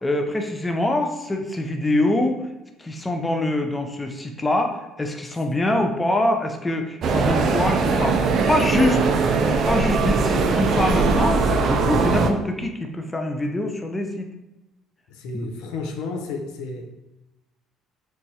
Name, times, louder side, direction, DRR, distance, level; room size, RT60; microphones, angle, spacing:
voice 1, 0.0-2.4 2.8-9.0 9.7-14.3 15.3-15.5, left 1 dB, 15° left, 4 dB, 0.4 m, -24 dB
sound 1, 7.0-12.3, right 4 dB, 55° right, 0.3 m, -20 dB
voice 2, 15.1-16.9, left 3 dB, 80° left, 4 dB, 0.4 m, -31 dB
3.0 x 2.2 x 2.7 m, 1.0 s
supercardioid pair, 85°, 0 cm